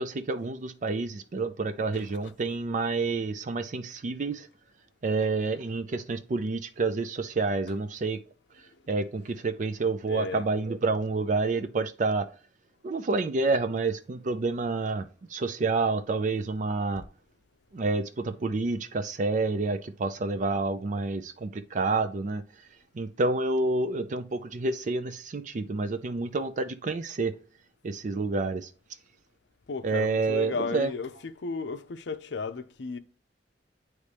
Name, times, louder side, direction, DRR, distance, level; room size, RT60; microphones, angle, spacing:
voice 1, 0.0-4.5 5.0-8.2 8.9-12.3 12.8-17.0 17.7-22.4 22.9-27.3 27.8-28.7 29.8-30.9, right 3 dB, 45° right, 0.4 m, -29 dB
voice 2, 1.9-2.3 7.7-7.8 8.6-8.9 10.1-10.5 29.7-33.0, left 4 dB, 70° left, 0.6 m, -35 dB
9.5 x 3.2 x 3.3 m
head